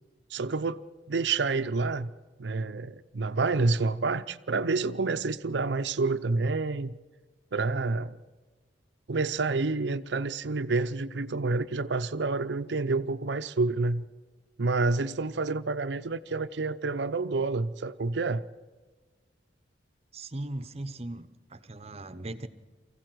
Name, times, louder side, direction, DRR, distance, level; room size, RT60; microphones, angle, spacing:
voice 1, 0.3-0.8 1.1-2.1 2.4-6.9 7.5-8.2 9.1-14.1 14.6-18.4, right 3 dB, 70° right, 0.6 m, -28 dB
voice 2, 20.1-22.5, right 1 dB, 35° right, 1.0 m, -38 dB
24.0 x 15.5 x 7.9 m
head